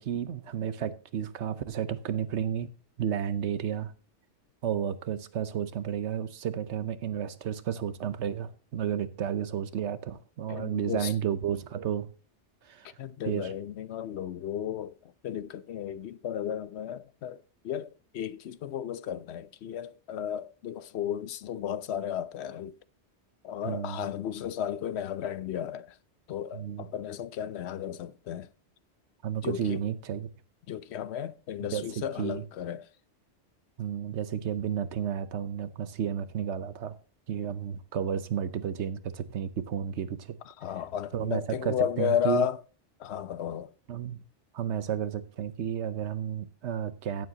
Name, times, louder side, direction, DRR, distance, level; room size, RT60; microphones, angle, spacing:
voice 1, 0.0-2.7 3.0-3.9 4.6-12.1 12.6-12.9 13.2-13.5 23.6-24.1 26.5-26.9 29.2-30.3 31.6-32.4 33.8-37.0 37.3-40.4 41.1-42.5 43.9-44.2 44.5-47.3, right 9 dB, 75° right, 1.1 m, -32 dB
voice 2, 10.5-11.1 13.0-14.9 15.2-22.8 23.4-26.0 26.3-28.5 29.4-29.8 30.7-32.9 40.5-42.6 43.0-43.7, left 9 dB, 70° left, 0.8 m, -34 dB
15.5 x 7.4 x 2.8 m
omnidirectional pair, 1.2 m